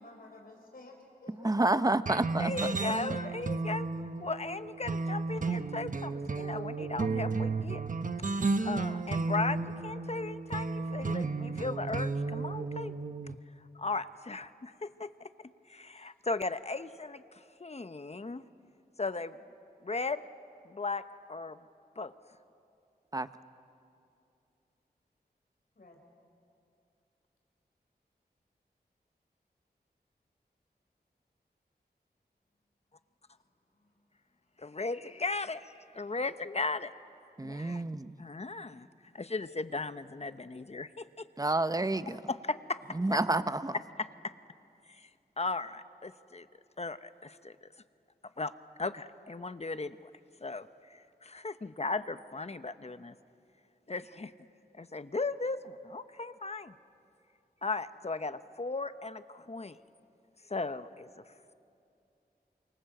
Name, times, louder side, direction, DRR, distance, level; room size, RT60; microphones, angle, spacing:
voice 1, 0.0-1.8 25.8-26.0 37.7-37.8 43.2-43.3, left 2 dB, 60° left, 0 dB, 4.2 m, -52 dB
voice 2, 1.4-2.5 23.1-23.3 37.4-38.2 41.4-42.2 42.9-43.8, right 2 dB, 20° right, 12 dB, 0.9 m, -29 dB
sound 1, 2.1-13.3, right 3 dB, 50° right, 1.0 m, -33 dB
voice 3, 2.4-3.9 4.2-7.8 8.6-12.9 13.7-18.4 19.0-19.4 19.8-20.2 20.6-21.0 21.3-21.6 22.0-22.1 34.6-36.9 37.4-37.8 38.2-38.9 39.1-41.2 42.1-42.8 44.0-44.1 44.9-45.1 45.4-46.5 46.8-47.6 48.4-48.5 48.8-50.1 50.4-53.1 53.9-54.3 54.8-56.7 57.6-59.8 60.5-61.2, left 3 dB, 40° left, 12 dB, 0.9 m, -37 dB
28.5 x 26.0 x 7.9 m, 2.6 s
wide cardioid pair, 65°, 17 cm